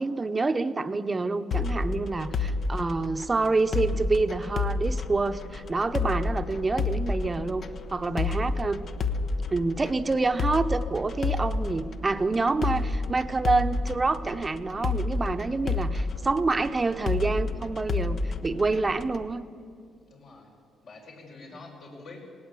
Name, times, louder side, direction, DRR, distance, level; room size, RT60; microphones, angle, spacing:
voice 1, 0.0-8.8 9.5-19.4, right 3 dB, 25° right, 9 dB, 0.9 m, -27 dB
sound 1, 1.5-19.3, left 3 dB, 55° left, 1.0 m, -30 dB
voice 2, 20.1-20.5 20.8-22.2, left 3 dB, 70° left, -2 dB, 5.0 m, -47 dB
18.5 x 17.5 x 8.4 m, 2.3 s
cardioid pair, 90°, 0 cm